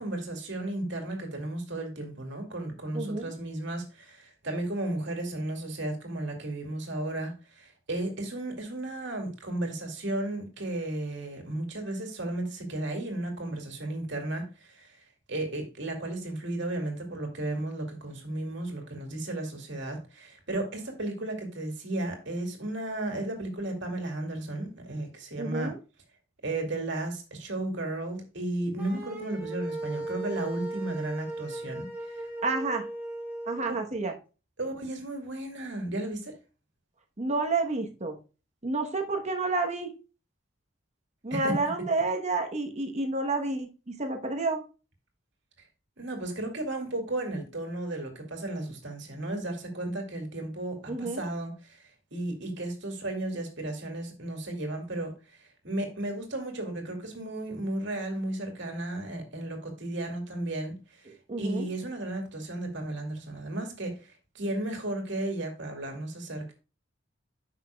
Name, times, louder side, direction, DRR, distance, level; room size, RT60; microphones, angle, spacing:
voice 1, 0.0-15.0 15.3-25.7 26.4-32.3 33.7-33.8 34.6-36.4 41.3-41.5 46.0-51.8 52.1-66.5, right 1 dB, 60° right, 2.3 m, -34 dB
voice 2, 2.9-3.3 25.4-25.8 32.4-32.9 33.5-34.2 37.2-38.2 38.6-39.9 41.2-44.6 50.9-51.2 61.3-61.7, right 3 dB, 35° right, 1.0 m, -29 dB
sound 1, 28.8-33.6, right 2 dB, 10° right, 3.7 m, -37 dB
9.9 x 5.8 x 2.3 m
head